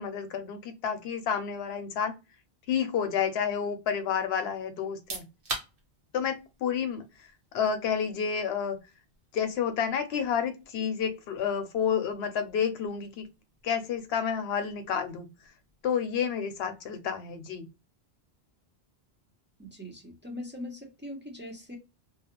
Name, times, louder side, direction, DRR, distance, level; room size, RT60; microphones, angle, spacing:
voice 1, 0.0-2.1 2.7-5.2 6.1-7.3 7.5-8.8 9.3-13.3 13.6-15.3 15.8-17.7, left 7 dB, 75° left, 0.8 m, -30 dB
sound 1, 4.9-17.5, right 3 dB, 60° right, 1.0 m, -47 dB
voice 2, 19.6-21.8, left 1 dB, 15° right, 0.4 m, -41 dB
2.4 x 2.1 x 2.8 m
omnidirectional pair, 1.1 m